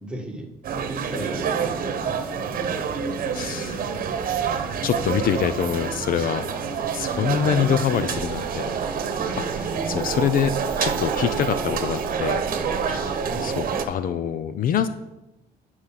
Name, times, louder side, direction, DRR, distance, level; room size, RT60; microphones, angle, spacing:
voice 1, 0.0-0.5 1.1-2.4 3.2-4.3 13.3-13.5, right 1 dB, 5° right, 1 dB, 1.5 m, -37 dB
sound 1, 0.6-13.9, right 6 dB, 60° right, 1.0 m, -28 dB
voice 2, 3.3-3.8 4.8-6.5 6.9-8.7 9.4-10.5 10.8-12.4 12.9-14.9, left 8 dB, 60° left, 12 dB, 0.6 m, -25 dB
sound 2, 8.1-13.8, right 5 dB, 30° right, 0.7 m, -32 dB
11.5 x 4.8 x 5.8 m, 0.94 s
cardioid pair, 120°, 17 cm